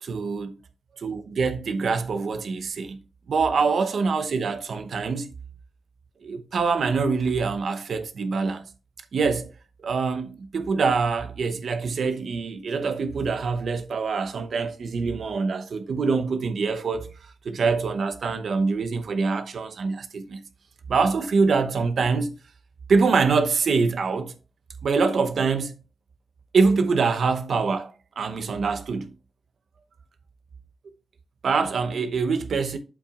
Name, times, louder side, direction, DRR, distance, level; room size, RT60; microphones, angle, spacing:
voice 1, 0.0-0.5 0.9-3.0 3.3-5.3 6.2-8.7 9.1-9.5 9.8-20.4 20.9-22.3 22.9-24.3 24.8-25.8 26.5-29.1 31.4-32.8, right 4 dB, 70° right, 0.8 m, -24 dB
8.6 x 7.4 x 2.4 m
wide cardioid pair, 135°, 0 cm